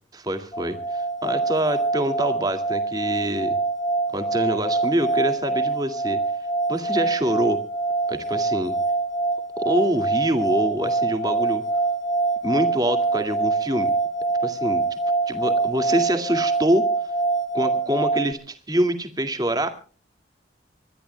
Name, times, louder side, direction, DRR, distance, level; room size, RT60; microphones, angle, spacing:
voice 1, 0.1-3.6 4.1-6.2 6.7-7.6 8.1-8.8 9.6-11.6 12.4-13.9 14.4-14.8 15.3-16.9 17.5-19.7, right 1 dB, 20° right, 8 dB, 2.1 m, -25 dB
sound 1, 0.5-18.3, right 3 dB, 25° left, 1.7 m, -24 dB
24.5 x 21.0 x 2.2 m, 0.39 s
head